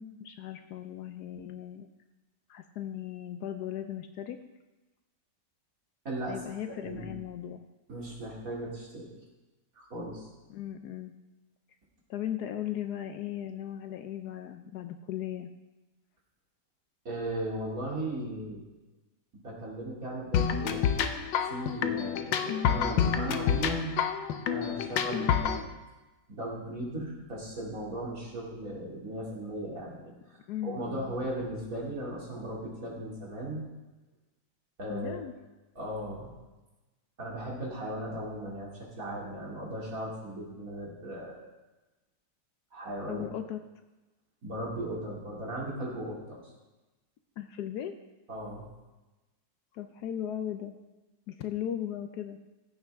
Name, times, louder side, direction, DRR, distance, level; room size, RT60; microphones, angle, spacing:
voice 1, 0.0-1.9 2.5-4.4 6.3-7.7 10.5-11.1 12.1-15.5 30.5-31.1 34.9-35.3 43.1-43.6 47.4-47.9 49.7-50.8 51.3-52.4, left 10 dB, 70° left, 8 dB, 1.0 m, -37 dB
voice 2, 6.0-6.4 6.8-7.1 7.9-9.1 9.7-10.3 17.0-18.6 19.4-20.9 21.4-24.0 24.5-25.8 26.3-33.7 34.8-35.2 35.7-36.3 37.2-41.5 42.7-43.2 44.4-46.4 48.3-48.6, right 1 dB, 50° right, -4 dB, 3.0 m, -37 dB
sound 1, 20.3-25.6, left 8 dB, 90° left, 1.4 m, -28 dB
15.5 x 8.9 x 3.5 m, 1.1 s
omnidirectional pair, 1.9 m